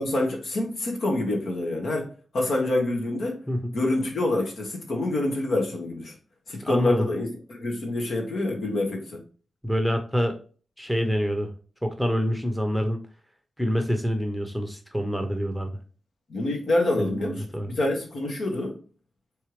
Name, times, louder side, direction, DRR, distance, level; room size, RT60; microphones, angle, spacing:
voice 1, 0.0-2.1 2.3-3.4 3.7-6.1 6.5-9.2 16.3-18.8, left 2 dB, 65° left, 1.6 m, -26 dB
voice 2, 6.6-7.1 9.6-10.4 10.8-11.5 11.8-13.0 13.6-15.8 17.0-17.7, equal, ahead, 0.9 m, -26 dB
4.6 x 3.3 x 3.2 m
wide cardioid pair, 95°, 0 cm